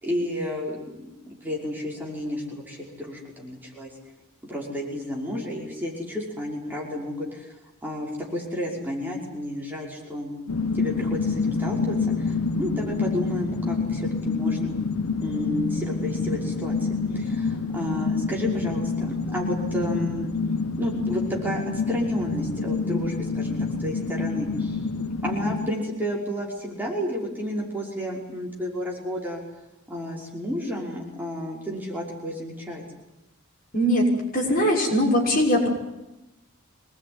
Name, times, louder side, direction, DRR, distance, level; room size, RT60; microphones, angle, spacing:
voice 1, 0.0-3.9 4.5-7.5 7.8-10.3 10.7-14.7 15.2-20.3 20.8-21.6 21.9-24.8 25.2-29.4 29.9-32.8, equal, 10° right, -3 dB, 5.6 m, -31 dB
sound 1, 10.5-25.7, left 4 dB, 70° left, 1.2 m, -27 dB
voice 2, 33.7-34.1 34.3-35.7, equal, 40° left, -1 dB, 6.4 m, -21 dB
25.5 x 20.5 x 9.9 m, 0.92 s
head